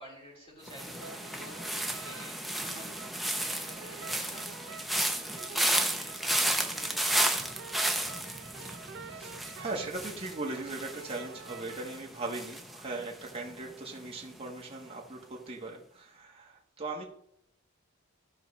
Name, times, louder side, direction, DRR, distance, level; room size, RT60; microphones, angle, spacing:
voice 1, 0.0-3.0 3.3-4.8 5.2-7.2, equal, 30° left, -4 dB, 4.1 m, -51 dB
sound 1, 0.7-13.7 14.0-14.4, right 1 dB, ahead, 0.7 m, -33 dB
sound 2, 1.0-12.0, right 5 dB, 60° right, 0.6 m, -48 dB
voice 2, 8.2-17.0, right 3 dB, 30° right, -2 dB, 1.3 m, -39 dB
13.0 x 5.6 x 3.2 m, 0.71 s
head